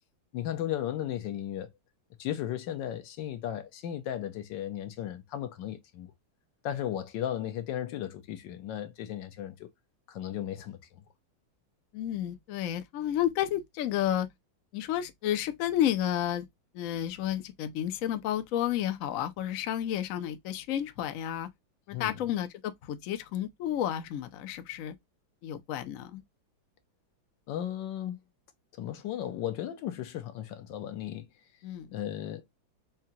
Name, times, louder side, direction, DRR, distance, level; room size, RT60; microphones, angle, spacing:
voice 1, 0.3-1.7 2.2-6.1 6.6-9.7 10.1-10.8 21.9-22.2 27.5-28.2 28.8-31.3 31.9-32.4, left 11 dB, 70° left, 1.3 m, -35 dB
voice 2, 11.9-14.3 14.7-16.4 16.7-21.5 21.9-24.9 25.4-26.2 31.6-32.0, left 11 dB, 85° left, 0.7 m, -31 dB
5.0 x 2.2 x 2.7 m
omnidirectional pair, 2.2 m